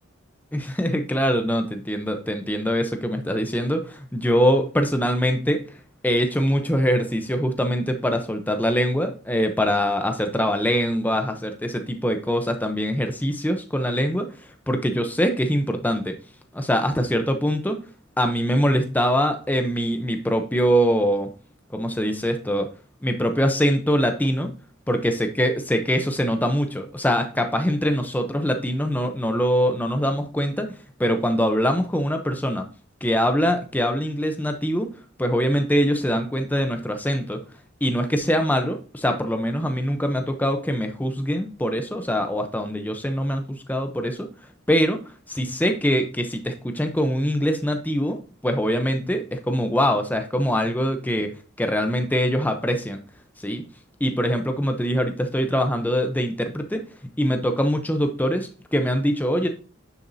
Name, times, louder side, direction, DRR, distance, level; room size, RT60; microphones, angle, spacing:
voice 1, 0.5-5.8 6.0-16.2 16.5-17.9 18.2-21.3 21.7-22.7 23.0-24.5 24.9-30.7 31.0-32.7 33.0-34.9 35.2-37.4 37.8-44.3 44.7-45.0 45.3-51.3 51.6-53.0 53.4-53.6 54.0-56.9 57.2-59.5, equal, 10° left, 6 dB, 0.7 m, -23 dB
10.0 x 7.1 x 2.7 m, 0.37 s
head